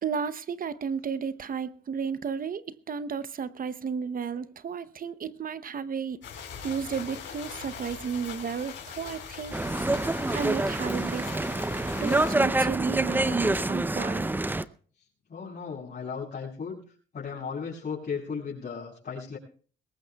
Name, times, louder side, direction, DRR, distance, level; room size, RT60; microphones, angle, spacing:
voice 1, 0.0-6.2 6.6-9.6 10.3-11.3 12.0-14.3, right 6 dB, 45° right, 0.8 m, -33 dB
sound 1, 6.2-12.3, left 7 dB, 70° left, 4.6 m, -41 dB
sound 2, 9.5-14.6, right 2 dB, 10° right, 0.6 m, -27 dB
voice 2, 15.3-19.4, left 6 dB, 50° left, 6.3 m, -36 dB
21.5 x 18.5 x 2.3 m
cardioid pair, 90°, 20 cm